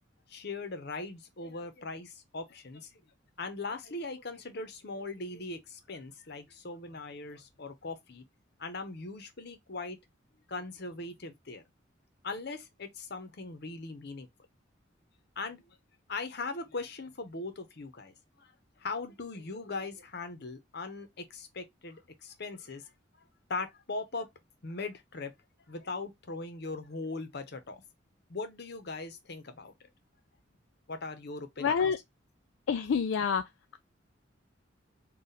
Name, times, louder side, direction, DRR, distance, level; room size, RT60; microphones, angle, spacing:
voice 1, 0.3-3.0 3.4-8.2 8.6-10.0 10.5-11.6 12.2-14.3 15.4-15.8 16.1-18.5 18.8-22.9 23.5-24.3 24.6-25.3 25.7-27.8 28.3-29.7 30.9-31.8, left 3 dB, 55° left, 0.9 m, -40 dB
voice 2, 31.6-32.0 32.7-33.8, left 6 dB, 75° left, 0.4 m, -28 dB
4.1 x 2.4 x 3.9 m
head